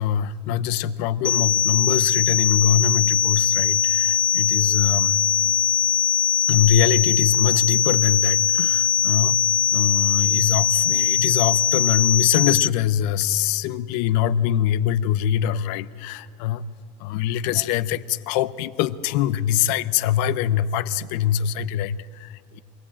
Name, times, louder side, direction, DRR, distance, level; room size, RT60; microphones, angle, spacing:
voice 1, 0.0-5.1 6.5-9.4 9.7-16.6 17.0-22.6, left 10 dB, 70° left, 15 dB, 0.7 m, -23 dB
sound 1, 1.2-12.7, left 9 dB, 20° left, 0.5 m, -21 dB
24.0 x 16.0 x 8.8 m, 2.4 s
supercardioid pair, 100°, 21 cm